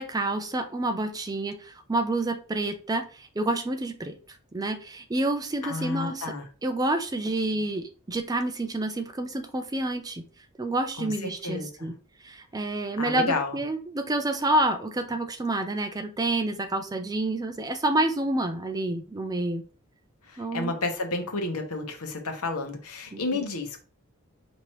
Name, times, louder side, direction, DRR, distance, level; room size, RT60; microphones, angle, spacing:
voice 1, 0.0-4.1 4.5-6.3 6.6-10.2 10.6-11.9 12.2-19.6 20.4-20.7 23.1-23.2, right 2 dB, 15° right, 0.4 m, -28 dB
voice 2, 5.6-6.4 11.0-11.9 13.0-13.6 20.2-23.8, left 3 dB, 80° left, 1.0 m, -31 dB
5.2 x 3.0 x 3.0 m
head